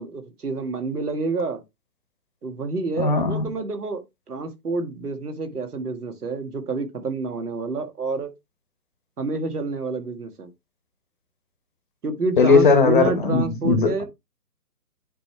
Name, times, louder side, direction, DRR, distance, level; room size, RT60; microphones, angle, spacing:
voice 1, 0.0-1.6 2.4-8.3 9.2-10.5 12.0-14.0, right 3 dB, 70° right, 1.9 m, -28 dB
voice 2, 3.0-3.4 12.4-14.0, left 4 dB, 30° left, 1.2 m, -18 dB
9.6 x 3.2 x 3.3 m
hypercardioid pair, 160°, 48 cm